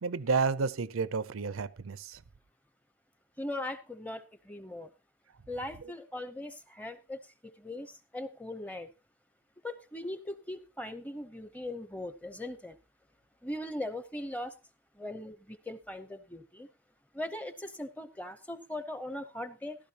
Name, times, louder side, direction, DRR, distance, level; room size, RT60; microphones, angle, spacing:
voice 1, 0.0-2.2, right 4 dB, 80° right, 0.6 m, -31 dB
voice 2, 3.4-4.9 5.5-8.9 9.6-12.8 13.4-14.5 14.9-16.7 17.1-19.8, left 1 dB, 5° left, 0.7 m, -40 dB
15.5 x 12.5 x 2.9 m
head